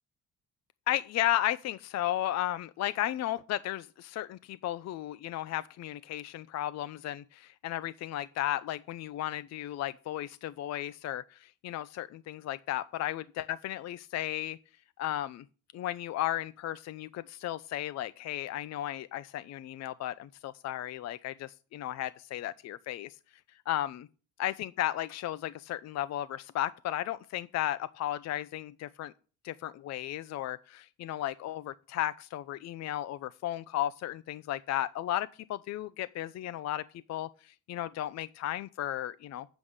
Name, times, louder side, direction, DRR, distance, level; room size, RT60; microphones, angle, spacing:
voice 1, 0.9-14.6 15.0-15.4 15.7-23.2 23.7-24.1 24.4-29.1 29.4-39.5, left 13 dB, 60° left, 15 dB, 0.5 m, -34 dB
8.1 x 4.9 x 7.1 m, 0.37 s
cardioid pair, 90°, 30 cm